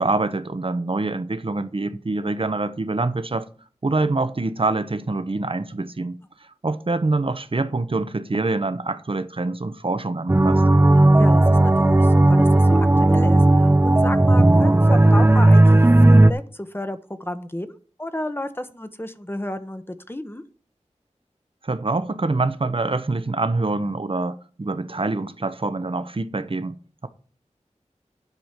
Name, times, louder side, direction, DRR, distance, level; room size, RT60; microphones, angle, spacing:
voice 1, 0.0-3.5 3.8-6.2 6.6-10.6 21.6-27.1, right 3 dB, 45° right, 0.9 m, -25 dB
sound 1, 10.3-16.3, right 2 dB, 20° right, 0.5 m, -14 dB
voice 2, 11.2-20.4, left 1 dB, 20° left, 1.0 m, -32 dB
11.0 x 5.0 x 7.5 m
wide cardioid pair, 60°, 12 cm